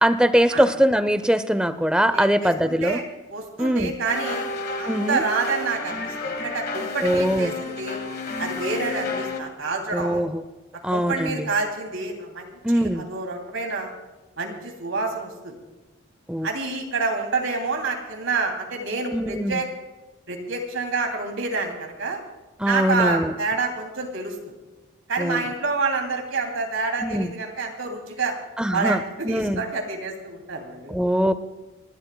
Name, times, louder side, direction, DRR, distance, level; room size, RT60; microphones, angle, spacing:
voice 1, 0.0-3.0 3.6-3.9 4.9-5.2 7.0-7.5 9.9-10.4 10.8-11.5 12.6-13.0 16.3-16.5 19.1-19.6 22.6-23.3 25.2-25.4 27.0-27.3 28.6-29.6 30.9-31.3, equal, 5° right, 12 dB, 0.5 m, -22 dB
voice 2, 2.1-3.0 3.3-4.5 4.8-8.0 8.4-10.3 10.9-13.9 14.4-15.5 16.4-19.7 20.3-22.2 22.7-24.4 25.1-28.3 28.7-31.0, right 4 dB, 85° right, 2 dB, 2.9 m, -28 dB
sound 1, 4.0-9.4, left 3 dB, 45° left, 1.6 m, -31 dB
28.5 x 12.0 x 2.3 m, 1.2 s
head